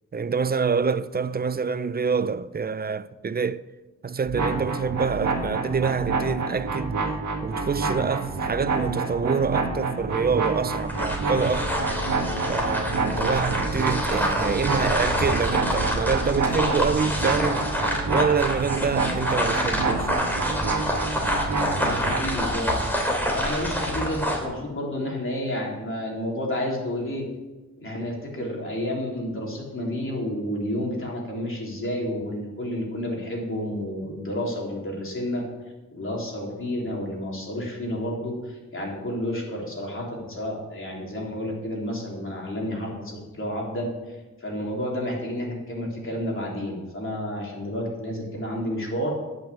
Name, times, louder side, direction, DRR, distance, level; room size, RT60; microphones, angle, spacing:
voice 1, 0.1-3.6 4.0-7.0 7.4-11.7 12.5-17.7 18.1-20.1, right 5 dB, 30° right, 0.5 m, -26 dB
sound 1, 4.2-22.3, right 3 dB, 75° right, 1.8 m, -28 dB
sound 2, 10.8-24.5, equal, 5° left, 3.0 m, -27 dB
Wind instrument woodwind instrument, 11.3-18.6, left 4 dB, 70° left, 2.4 m, -39 dB
voice 2, 13.1-13.4 21.8-22.9 23.3-27.2 27.8-35.4 35.9-49.1, left 1 dB, 45° left, 3.7 m, -30 dB
10.5 x 6.2 x 8.5 m
cardioid pair, 70°, 30 cm